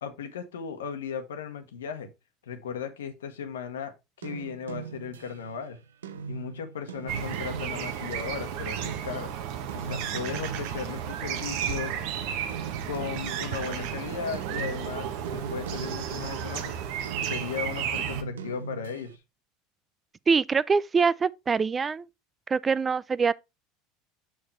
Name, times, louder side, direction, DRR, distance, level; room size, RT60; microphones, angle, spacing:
voice 1, 0.0-2.1 2.4-5.8 6.3-9.3 9.7-11.9 12.9-16.7 17.2-19.2, left 7 dB, 85° left, 1.2 m, -36 dB
sound 1, 4.2-11.4 11.6-13.9 14.3-16.6 17.0-19.2, right 5 dB, 90° right, 0.6 m, -41 dB
sound 2, 7.1-18.2, right 8 dB, 65° right, 1.1 m, -33 dB
voice 2, 20.3-22.1 22.5-23.3, right 5 dB, 25° right, 0.4 m, -24 dB
6.8 x 6.3 x 3.1 m
hypercardioid pair, 85°, 0 cm